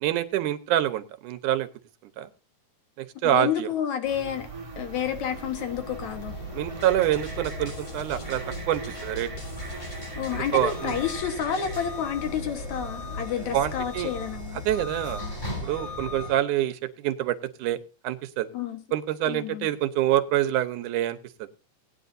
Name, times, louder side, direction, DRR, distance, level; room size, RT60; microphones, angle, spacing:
voice 1, 0.0-1.7 2.2-2.3 3.0-3.7 6.5-8.4 8.7-9.3 10.3-11.0 13.5-14.1 14.7-15.2 15.6-17.8 18.0-18.5 18.9-21.5, right 12 dB, 85° right, 2.4 m, -26 dB
voice 2, 3.3-4.5 4.8-6.3 10.2-14.7 18.5-18.8 19.3-19.7, left 9 dB, 70° left, 2.6 m, -30 dB
sound 1, 4.0-11.2, right 3 dB, 15° right, 1.1 m, -42 dB
sound 2, 4.6-16.3, left 1 dB, 20° left, 6.5 m, -37 dB
sound 3, 6.8-11.9, left 2 dB, 55° left, 6.8 m, -48 dB
18.5 x 9.8 x 2.7 m
omnidirectional pair, 3.5 m